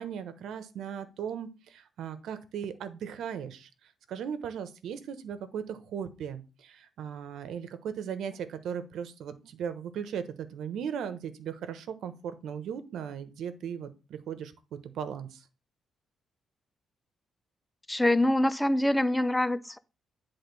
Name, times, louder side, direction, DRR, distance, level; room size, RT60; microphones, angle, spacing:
voice 1, 0.0-3.7 4.1-15.4, right 8 dB, 70° right, 1.1 m, -37 dB
voice 2, 17.9-19.8, left 1 dB, 5° left, 0.5 m, -25 dB
10.5 x 3.8 x 5.4 m
cardioid pair, 160°, 0 cm